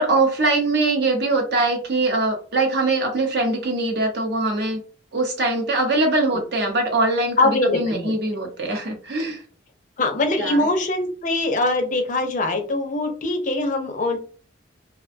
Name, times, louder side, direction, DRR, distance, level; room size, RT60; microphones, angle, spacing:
voice 1, 0.0-4.8 5.1-9.4 10.4-10.6, right 2 dB, 60° right, 3 dB, 0.7 m, -22 dB
voice 2, 7.4-8.1 10.0-14.2, left 2 dB, 40° left, 5 dB, 0.5 m, -22 dB
2.5 x 2.1 x 2.5 m, 0.38 s
head